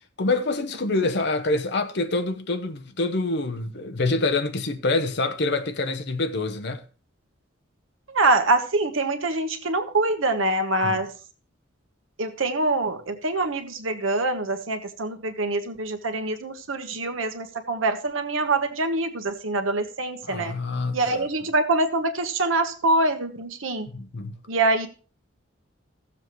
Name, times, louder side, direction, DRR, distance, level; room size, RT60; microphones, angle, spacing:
voice 1, 0.2-6.8 10.8-11.0 20.2-21.3 23.9-24.4, left 2 dB, 60° left, 0.8 m, -26 dB
voice 2, 8.1-11.1 12.2-20.5 20.9-23.9 24.5-24.9, right 2 dB, 80° right, 1.2 m, -24 dB
15.5 x 7.3 x 3.1 m
head